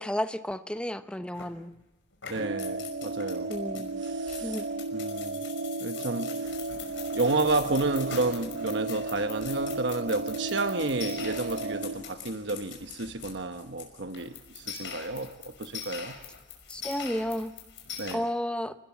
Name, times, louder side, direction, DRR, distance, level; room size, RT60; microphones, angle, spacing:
voice 1, 0.0-1.7 3.5-4.0 4.3-4.6 16.7-17.5 18.1-18.7, equal, 5° left, 0.8 m, -32 dB
sound 1, 1.3-1.8 2.1-18.1, left 7 dB, 85° left, 5.7 m, -43 dB
voice 2, 2.3-4.6 4.9-5.4 5.8-6.6 7.1-16.2 18.0-18.2, right 2 dB, 70° right, 1.1 m, -31 dB
sound 2, 2.4-12.0, right 3 dB, 90° right, 2.2 m, -34 dB
29.0 x 20.0 x 7.2 m
head